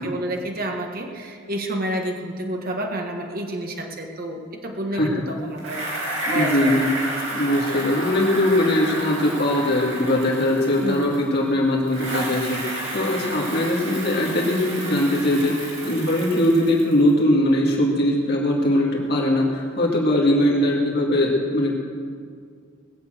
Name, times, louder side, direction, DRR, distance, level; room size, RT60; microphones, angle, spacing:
voice 1, 0.0-6.8 10.8-11.2, right 1 dB, 45° right, 2 dB, 1.4 m, -29 dB
voice 2, 4.9-5.2 6.3-6.9 7.3-21.7, left 1 dB, 50° left, -3 dB, 2.2 m, -21 dB
Bicycle, 5.6-11.4 11.9-17.1, right 1 dB, 65° right, 4.6 m, -31 dB
20.0 x 7.2 x 7.9 m, 2.2 s
head